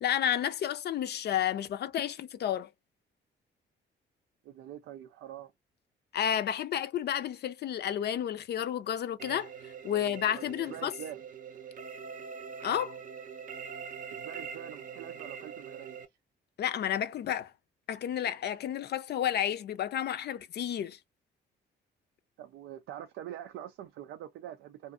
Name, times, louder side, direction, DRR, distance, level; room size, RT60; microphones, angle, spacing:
voice 1, 0.0-2.7 6.1-10.9 12.6-13.0 16.6-17.5 17.9-21.0, left 10 dB, 55° left, 0.4 m, -31 dB
voice 2, 4.4-5.5 9.9-10.0 10.3-11.2 14.1-16.0 22.4-24.9, right 11 dB, 85° right, 0.4 m, -45 dB
sound 1, 9.2-16.1, right 6 dB, 45° right, 0.6 m, -43 dB
2.5 x 2.5 x 2.2 m
cardioid pair, 90°, 20 cm